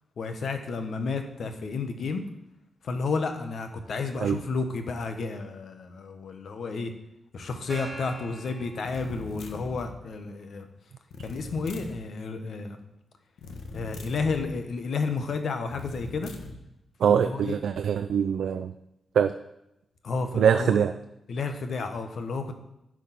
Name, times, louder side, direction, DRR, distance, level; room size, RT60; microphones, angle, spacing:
voice 1, 0.2-2.2 2.8-6.9 7.3-10.7 11.2-12.8 13.7-16.3 17.0-17.6 20.0-20.8 21.3-22.5, left 4 dB, 60° left, 6 dB, 1.1 m, -31 dB
Gong, 7.7-9.7, equal, 10° left, 4.0 m, -44 dB
sound 1, 8.8-10.0 11.1-12.0 13.4-14.5 15.7-16.6, left 3 dB, 80° left, 1.2 m, -40 dB
voice 2, 17.0-18.7 19.1-19.3 20.3-20.9, right 8 dB, 85° right, 10 dB, 0.4 m, -23 dB
12.0 x 4.9 x 5.8 m, 0.87 s
wide cardioid pair, 150°, 0 cm